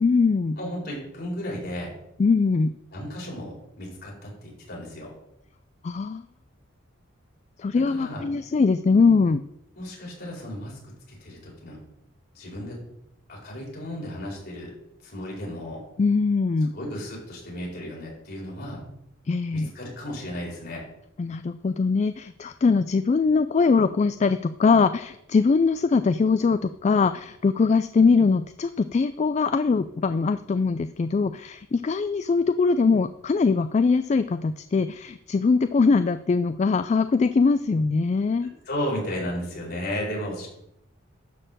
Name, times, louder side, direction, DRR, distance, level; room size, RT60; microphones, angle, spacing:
voice 1, 0.0-0.6 2.2-2.7 5.8-6.2 7.6-9.4 16.0-16.7 19.3-19.7 21.2-38.5, left 4 dB, 35° left, 11 dB, 0.3 m, -22 dB
voice 2, 0.6-1.9 2.9-5.1 7.7-8.2 9.7-11.8 12.3-12.8 13.3-14.7 15.0-15.8 16.7-18.8 19.5-20.8 38.4-40.5, equal, 55° left, -3 dB, 4.5 m, -34 dB
11.5 x 4.4 x 7.3 m, 0.81 s
head